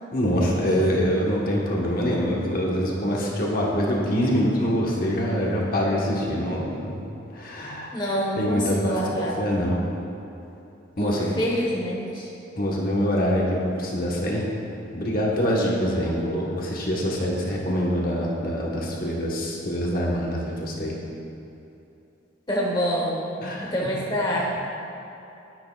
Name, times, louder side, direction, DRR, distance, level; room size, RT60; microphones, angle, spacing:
voice 1, 0.1-7.0 7.3-7.9 8.4-9.7 11.0-11.3 12.6-14.4 14.9-20.9 23.4-23.7, equal, 50° left, -3 dB, 1.2 m, -25 dB
voice 2, 7.9-9.4 11.0-12.3 22.5-23.2 23.7-24.5, equal, 25° left, -4 dB, 1.0 m, -26 dB
10.0 x 9.4 x 2.3 m, 2.9 s
head